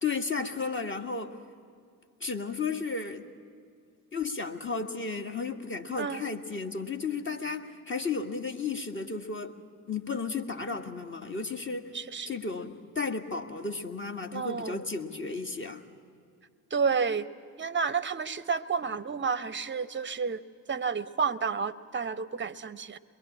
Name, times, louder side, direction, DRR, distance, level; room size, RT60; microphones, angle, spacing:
voice 1, 0.0-1.4 2.2-3.3 4.1-9.6 9.9-12.0 12.3-15.8, left 4 dB, 25° left, 5 dB, 1.8 m, -33 dB
voice 2, 11.9-12.3 14.3-14.8 16.7-17.3 17.6-20.4 20.7-23.0, right 5 dB, 25° right, 17 dB, 0.9 m, -30 dB
23.5 x 22.0 x 8.7 m, 2.2 s
hypercardioid pair, 50°, 46 cm